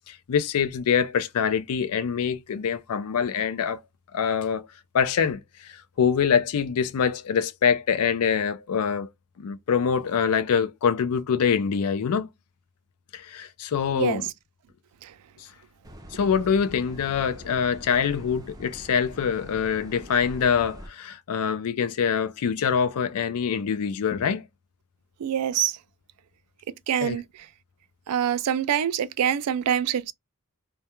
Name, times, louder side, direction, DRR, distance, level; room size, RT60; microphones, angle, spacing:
voice 1, 0.1-3.8 4.1-4.7 4.9-9.1 9.4-12.3 13.1-14.3 15.4-15.5 16.1-24.4 27.0-27.2, left 7 dB, 75° left, 0.4 m, -25 dB
sound 1, 15.8-20.9, right 1 dB, 15° right, 0.4 m, -44 dB
voice 2, 25.2-25.8 26.9-27.2 28.1-30.1, right 9 dB, 85° right, 0.3 m, -25 dB
2.2 x 2.2 x 2.8 m
head